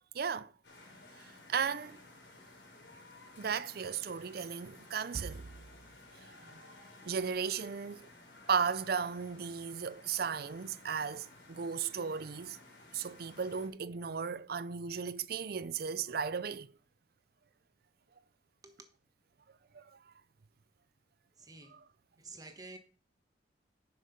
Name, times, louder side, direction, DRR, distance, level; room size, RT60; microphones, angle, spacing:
voice 1, 0.1-0.5 1.5-2.0 3.4-5.5 7.1-8.1 8.5-12.6 12.9-16.7 19.7-19.8, right 6 dB, 55° right, 0.5 m, -35 dB
sound 1, 0.6-13.7, left 2 dB, 70° left, 3.7 m, -56 dB
voice 2, 21.4-21.8 22.2-22.8, right 3 dB, 20° right, 1.3 m, -50 dB
11.0 x 6.5 x 5.4 m
head